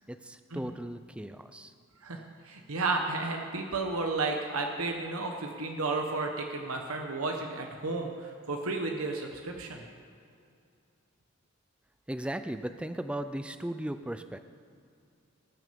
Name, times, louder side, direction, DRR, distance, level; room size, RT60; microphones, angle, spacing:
voice 1, 0.1-1.7 12.1-14.4, right 1 dB, 5° right, 9 dB, 0.4 m, -37 dB
voice 2, 2.0-9.8, right 3 dB, 85° right, 2 dB, 1.2 m, -32 dB
19.0 x 6.5 x 6.9 m, 2.4 s
head